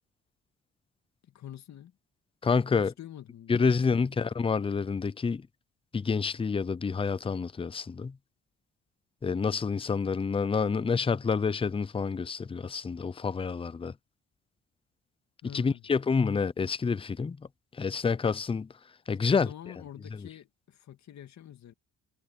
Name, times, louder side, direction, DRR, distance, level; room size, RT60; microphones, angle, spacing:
voice 1, 1.2-1.9 2.8-4.3 15.4-15.9 19.4-21.7, left 11 dB, 65° left, 2.3 m, -47 dB
voice 2, 2.4-2.9 3.5-5.4 5.9-8.1 9.2-13.9 15.5-17.4 17.8-18.7 19.1-19.5, left 5 dB, 20° left, 0.5 m, -28 dB
cardioid pair, 90°, 30 cm